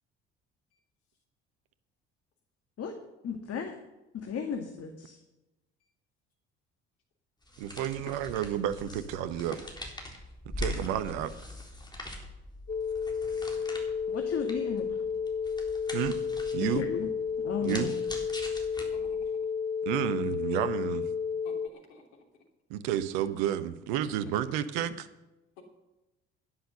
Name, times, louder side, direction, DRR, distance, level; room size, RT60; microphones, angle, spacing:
voice 1, 3.2-3.7 4.1-5.2 14.1-15.0 16.6-17.1 17.4-17.9, left 6 dB, 45° left, 4 dB, 1.9 m, -35 dB
sound 1, 7.4-19.3, left 1 dB, 10° left, 3.8 m, -43 dB
voice 2, 7.6-9.6 10.4-11.3 15.9-16.2 16.5-16.8 17.6-17.9 19.8-21.1 22.7-25.1, right 11 dB, 70° right, 13 dB, 1.1 m, -31 dB
sound 2, 12.7-21.7, left 6 dB, 30° left, 0.9 m, -32 dB
voice 3, 18.8-19.4 21.4-22.2 24.0-24.1 25.6-25.7, left 4 dB, 75° left, 2 dB, 3.0 m, -53 dB
11.0 x 10.5 x 6.7 m, 1.0 s
hypercardioid pair, 55°, 33 cm